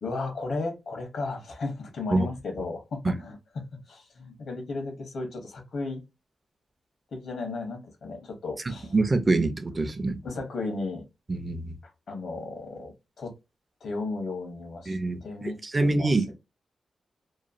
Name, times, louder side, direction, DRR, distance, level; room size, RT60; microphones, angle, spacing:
voice 1, 0.0-6.0 7.1-8.9 10.2-11.1 11.8-13.3 13.8-16.3, left 3 dB, 80° left, 1.1 m, -35 dB
voice 2, 8.7-10.2 11.3-11.7 14.9-15.2 15.6-16.2, right 2 dB, 30° right, 0.5 m, -25 dB
3.0 x 2.2 x 2.5 m
cardioid pair, 95°, 0 cm